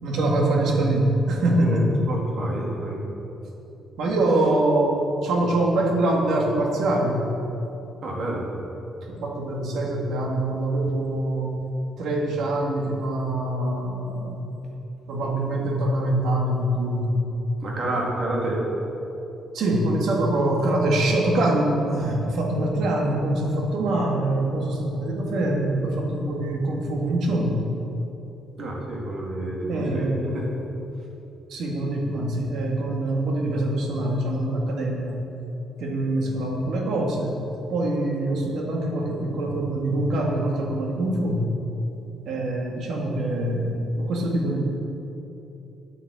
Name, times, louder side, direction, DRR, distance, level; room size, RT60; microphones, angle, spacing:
voice 1, 0.0-2.1 4.0-7.2 9.1-11.5 12.0-14.4 15.1-17.2 19.5-27.6 29.7-30.4 31.5-35.2 35.8-37.4 37.7-41.5 42.2-44.6, right 1 dB, 65° right, 0 dB, 1.8 m, -24 dB
voice 2, 1.6-3.0 8.0-8.5 17.6-18.6 28.6-30.1 30.3-30.4, right 1 dB, 45° right, -2 dB, 2.2 m, -29 dB
9.2 x 8.3 x 7.0 m, 3.0 s
cardioid pair, 170°, 0 cm